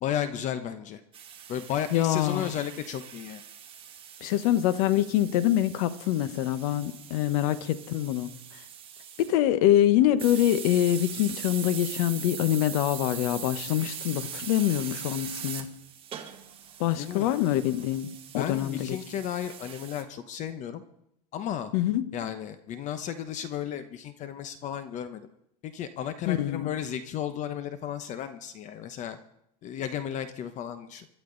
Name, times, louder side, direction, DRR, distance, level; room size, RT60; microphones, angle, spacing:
voice 1, 0.0-1.0 1.5-3.4 16.9-17.4 18.4-20.8 21.3-21.7 22.1-25.3 25.6-29.2 29.6-31.1, left 9 dB, 35° left, 1.0 m, -34 dB
sound 1, 1.1-9.4 10.2-20.0, right 8 dB, 25° right, 1.8 m, -42 dB
voice 2, 1.9-2.5 4.2-8.3 9.2-15.7 16.8-18.1 18.3-19.0 21.7-22.1 26.3-26.7, left 12 dB, 60° left, 1.2 m, -25 dB
25.0 x 12.0 x 4.0 m
supercardioid pair, 135°, 21 cm